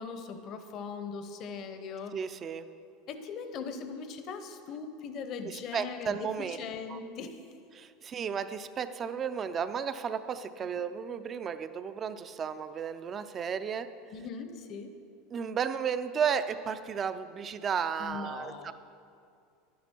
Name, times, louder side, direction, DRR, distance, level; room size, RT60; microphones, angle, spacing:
voice 1, 0.0-2.2 3.1-7.4 10.6-10.7 14.1-14.9 18.0-18.7, left 5 dB, 50° left, 8 dB, 0.9 m, -40 dB
voice 2, 2.1-2.7 5.4-6.6 6.9-7.0 7.7-13.9 15.3-18.7, right 7 dB, 30° right, 11 dB, 0.5 m, -33 dB
11.0 x 10.5 x 4.5 m, 2.5 s
supercardioid pair, 120°, 0 cm